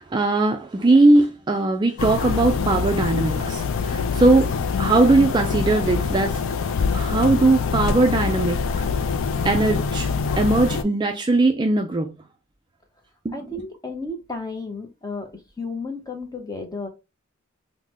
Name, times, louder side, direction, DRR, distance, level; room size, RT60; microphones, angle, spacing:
voice 1, 0.0-6.4 6.9-8.6 9.4-10.1 10.4-12.2 13.2-13.4, right 2 dB, 20° right, 0.3 m, -19 dB
sound 1, 2.0-10.8, left 5 dB, 65° left, 0.4 m, -24 dB
voice 2, 13.3-15.3 15.6-16.9, left 3 dB, 20° left, 0.7 m, -32 dB
3.7 x 2.1 x 2.9 m
head